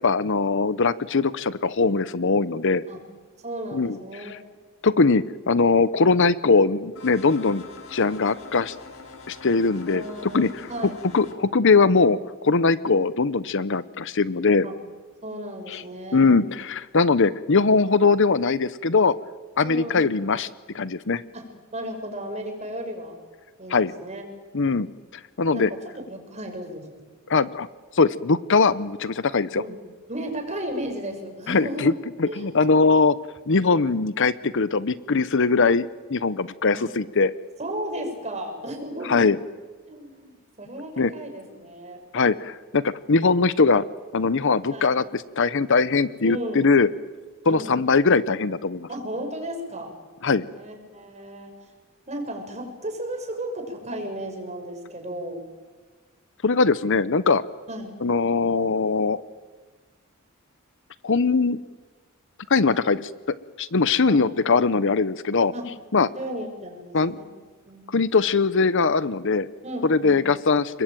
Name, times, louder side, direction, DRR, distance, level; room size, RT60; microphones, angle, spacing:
voice 1, 0.0-2.8 3.7-4.4 4.8-7.6 7.9-8.7 9.3-10.5 11.1-14.7 15.7-15.8 16.1-19.1 19.6-20.5 20.7-21.2 23.7-23.9 24.5-24.9 25.4-25.7 27.3-27.7 27.9-29.6 31.5-31.9 32.2-33.2 33.5-37.3 39.0-39.4 41.0-41.1 42.1-43.8 44.1-46.9 47.5-48.9 50.2-50.4 56.4-57.4 58.0-59.2 61.0-61.6 62.5-63.1 63.6-65.5 65.9-66.1 66.9-67.1 67.9-69.5 69.8-70.8, left 4 dB, 60° left, 16 dB, 0.8 m, -21 dB
voice 2, 3.4-4.4 9.9-11.0 14.6-14.8 15.2-16.4 19.6-20.1 21.3-23.2 23.6-24.3 25.5-26.9 29.6-29.8 30.1-32.0 32.3-32.5 36.7-36.9 37.6-39.3 39.9-42.0 44.7-44.9 46.2-46.7 47.5-47.7 48.9-49.9 50.4-51.5 52.1-55.4 57.7-58.0 64.0-64.3 65.5-65.7 66.2-67.3 67.7-67.9 69.6-70.2, right 1 dB, 30° right, 4 dB, 6.3 m, -34 dB
sound 1, 7.0-11.4, left 4 dB, 75° left, 3.7 m, -44 dB
29.5 x 22.0 x 9.1 m, 1.4 s
head